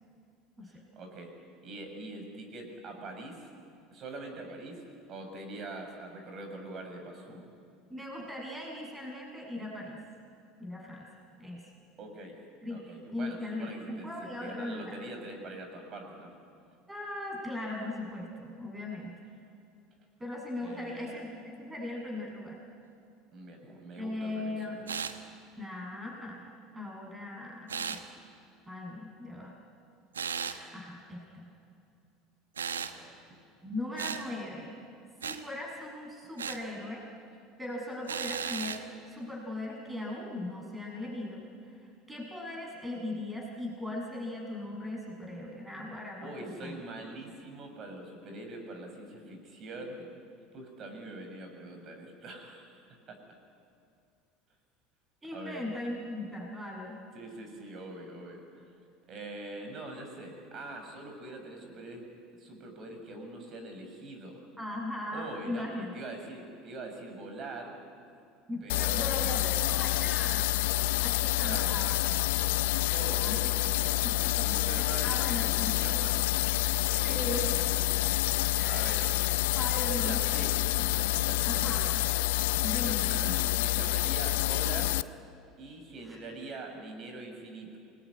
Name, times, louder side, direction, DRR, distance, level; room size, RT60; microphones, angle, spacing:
voice 1, 0.6-1.3 1.6-3.5 3.9-7.5 12.0-12.3 12.7-16.3 20.6-21.2 23.3-24.9 32.9-33.2 46.2-50.1 50.5-53.2 55.3-55.7 57.1-58.6 59.1-62.0 62.4-64.4 65.1-67.7 68.6-69.8 71.4-71.8 72.9-76.4 76.9-78.1 78.6-79.1 79.9-82.4 82.8-85.0 85.6-87.8, right 2 dB, 40° right, 4 dB, 6.9 m, -43 dB
voice 2, 7.9-10.0 10.6-11.1 11.4-11.6 12.6-12.8 13.1-15.0 16.9-19.2 20.2-22.6 24.0-24.8 25.6-26.5 26.7-28.0 28.7-29.5 30.4-31.5 33.6-34.9 35.2-37.0 37.6-38.8 39.1-41.4 42.1-46.8 55.2-57.0 64.6-66.0 68.5-72.2 73.2-73.5 74.0-75.7 77.0-77.8 78.6-78.9 79.5-80.8 81.4-81.9 82.6-83.2 86.0-86.2, left 1 dB, 15° right, 0 dB, 7.4 m, -39 dB
sound 1, 24.9-25.2 27.7-28.0 30.1-30.6 32.6-33.0 34.0-34.2 35.2-35.4 36.4-36.6 38.1-38.8, right 7 dB, 80° right, 1.3 m, -35 dB
sound 2, 68.7-85.0, left 18 dB, 65° left, 0.6 m, -28 dB
28.0 x 21.0 x 10.0 m, 2.5 s
figure-of-eight pair, 70°, 0 cm